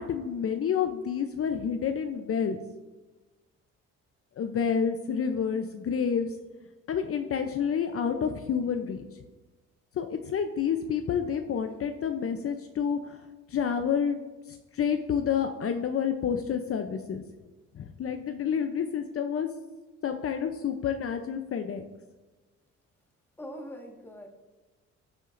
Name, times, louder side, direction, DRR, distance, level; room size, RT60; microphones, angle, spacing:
voice 1, 0.0-2.6 4.4-6.4 6.9-9.1 10.0-13.2 13.5-14.2 14.5-17.2 17.7-19.5 20.0-21.8, left 7 dB, 50° left, 6 dB, 0.7 m, -29 dB
voice 2, 23.4-24.3, equal, 5° left, 2 dB, 1.6 m, -42 dB
13.5 x 7.3 x 2.6 m, 1.2 s
cardioid pair, 90°, 30 cm